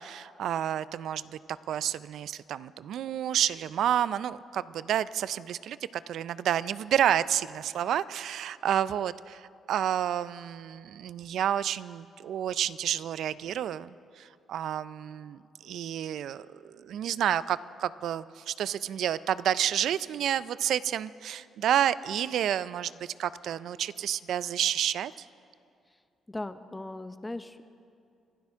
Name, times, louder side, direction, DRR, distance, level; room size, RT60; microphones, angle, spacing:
voice 1, 0.0-1.4 1.7-25.3, right 10 dB, 75° right, 17 dB, 0.4 m, -30 dB
voice 2, 26.3-27.6, left 2 dB, 15° left, 11 dB, 0.7 m, -38 dB
25.5 x 12.0 x 3.6 m, 2.4 s
cardioid pair, 90°, 0 cm